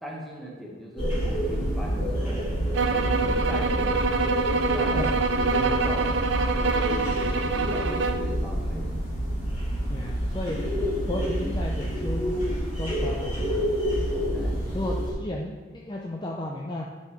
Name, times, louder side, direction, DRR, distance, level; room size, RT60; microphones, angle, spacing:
voice 1, 0.0-4.2 4.7-5.0 5.3-8.9 14.3-14.6, equal, ahead, -4 dB, 1.4 m, -38 dB
sound 1, 1.0-15.1, equal, 40° left, 2.4 m, -28 dB
sound 2, 2.7-8.3, right 4 dB, 80° right, 0.5 m, -26 dB
voice 2, 9.9-10.6 11.1-12.4 12.8-13.6 14.7-16.9, left 1 dB, 25° left, -1 dB, 0.5 m, -34 dB
10.0 x 5.5 x 3.2 m, 1.4 s
head